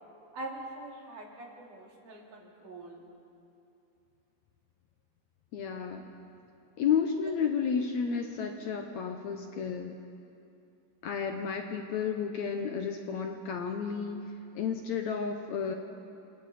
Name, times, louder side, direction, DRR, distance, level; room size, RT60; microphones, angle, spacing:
voice 1, 0.3-3.0, right 2 dB, 65° right, -1 dB, 4.1 m, -43 dB
voice 2, 5.5-6.1 6.8-10.0 11.0-14.2 14.6-15.7, left 6 dB, 70° left, 4 dB, 1.9 m, -32 dB
28.5 x 27.0 x 4.2 m, 2.7 s
omnidirectional pair, 4.0 m